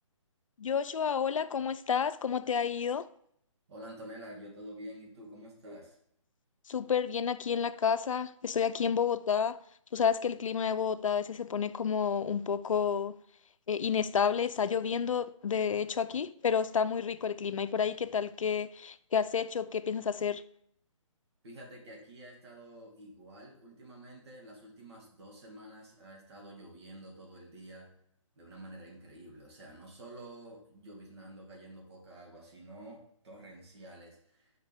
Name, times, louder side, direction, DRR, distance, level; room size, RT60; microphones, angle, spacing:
voice 1, 0.6-3.1 6.7-9.6 9.9-13.2 13.7-20.4, left 7 dB, 85° left, 0.5 m, -30 dB
voice 2, 3.7-6.0 21.4-27.9 28.4-34.5, right 1 dB, 55° right, 2.1 m, -49 dB
6.7 x 5.2 x 3.5 m
hypercardioid pair, 160°, 16 cm